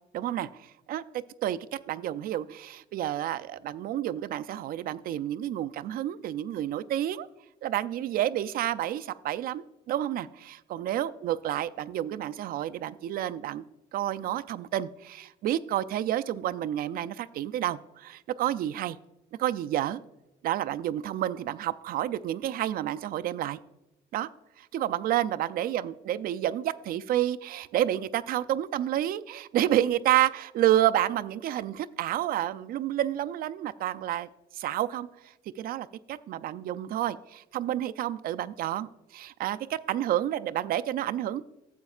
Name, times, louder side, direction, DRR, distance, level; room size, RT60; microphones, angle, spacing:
voice 1, 0.1-1.0 1.4-7.3 7.6-13.6 13.9-19.0 19.4-20.0 20.4-23.6 24.1-24.3 24.6-34.3 34.5-35.1 35.6-41.4, right 12 dB, 60° right, 13 dB, 0.4 m, -29 dB
12.5 x 7.8 x 2.4 m, 0.92 s
cardioid pair, 110°, 17 cm